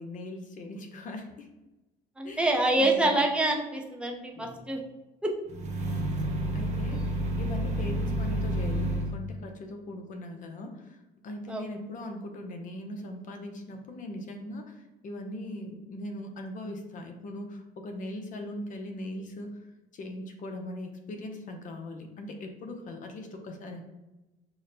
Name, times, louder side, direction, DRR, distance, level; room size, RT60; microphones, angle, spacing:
voice 1, 0.0-1.5 2.2-2.5 2.8-3.1 4.3-4.8 5.8-11.0 11.2-19.5 19.9-23.8, left 1 dB, 50° left, 4 dB, 0.7 m, -40 dB
voice 2, 2.2-4.8 5.2-5.3 11.5-11.7, right 2 dB, 5° right, 1 dB, 0.6 m, -26 dB
sound 1, 5.5-9.1, right 1 dB, 45° right, 0.7 m, -29 dB
5.9 x 2.1 x 2.6 m, 1.1 s
cardioid pair, 110°, 17 cm